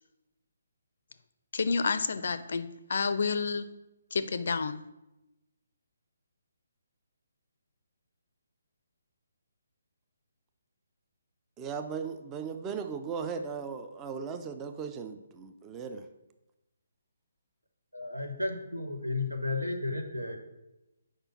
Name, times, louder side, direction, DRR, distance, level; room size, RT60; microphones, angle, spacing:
voice 1, 1.5-3.7 4.1-4.8, left 4 dB, 55° left, 12 dB, 0.4 m, -29 dB
voice 2, 11.6-16.1, right 6 dB, 15° right, 8 dB, 0.5 m, -37 dB
voice 3, 17.9-20.4, left 2 dB, 90° right, 4 dB, 1.1 m, -33 dB
5.0 x 4.4 x 5.8 m, 0.95 s
figure-of-eight pair, 140°, 0 cm